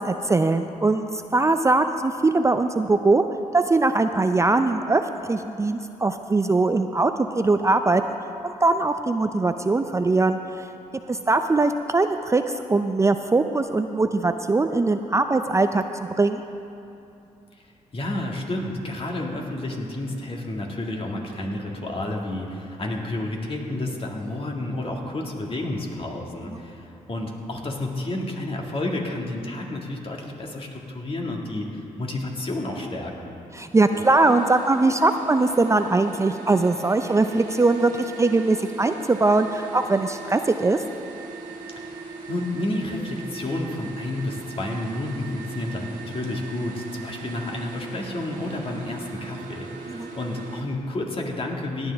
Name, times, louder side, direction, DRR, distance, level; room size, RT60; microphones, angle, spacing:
voice 1, 0.0-3.2 3.5-5.0 5.3-8.0 8.4-10.7 11.1-15.8 16.2-16.4 26.5-26.6 33.5-37.9 38.2-40.8 49.9-50.1, right 3 dB, 20° right, 8 dB, 0.4 m, -21 dB
voice 2, 17.9-33.3 42.3-51.9, left 1 dB, 40° left, 0 dB, 1.9 m, -30 dB
sound 1, 33.9-50.6, right 4 dB, 80° right, 1.6 m, -40 dB
17.5 x 9.8 x 3.5 m, 2.7 s
cardioid pair, 65°, 14 cm